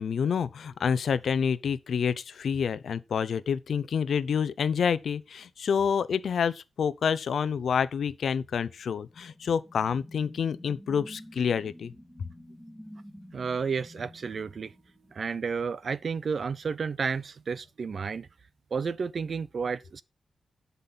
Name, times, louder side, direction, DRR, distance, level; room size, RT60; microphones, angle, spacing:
voice 1, 0.0-11.9, left 7 dB, 70° left, 0.7 m, -28 dB
sound 1, 9.1-15.4, left 1 dB, ahead, 2.8 m, -49 dB
voice 2, 13.3-14.7 15.1-18.3 18.7-20.0, right 5 dB, 50° right, 0.6 m, -31 dB
12.0 x 5.5 x 4.2 m
wide cardioid pair, 140°, 0 cm